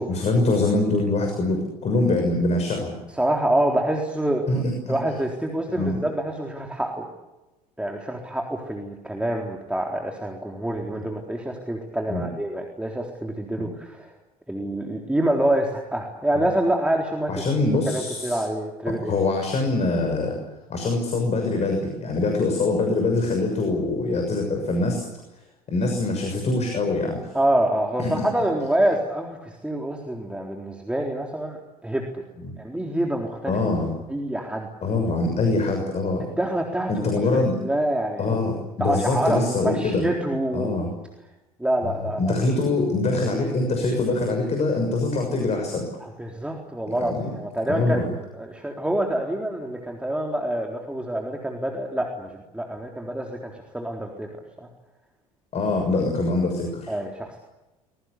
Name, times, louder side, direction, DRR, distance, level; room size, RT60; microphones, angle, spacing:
voice 1, 0.1-2.9 4.5-4.9 5.7-6.0 12.1-12.2 16.3-16.4 17.3-18.4 18.9-20.4 20.7-25.0 25.7-27.2 28.0-28.3 33.5-33.9 34.8-36.2 36.9-37.6 38.2-40.0 40.5-40.9 41.8-41.9 42.2-45.9 46.9-47.2 47.7-48.1 55.5-56.9, left 2 dB, 35° left, 3 dB, 6.4 m, -24 dB
voice 2, 3.1-4.6 4.9-7.1 7.8-14.1 14.5-17.4 17.9-19.1 27.3-32.0 32.6-33.6 34.1-34.7 36.2-38.3 38.8-40.8 41.6-42.3 46.0-54.3 56.9-57.4, right 1 dB, 5° right, 1 dB, 3.9 m, -26 dB
25.5 x 22.5 x 8.3 m, 1.0 s
figure-of-eight pair, 65°, 19 cm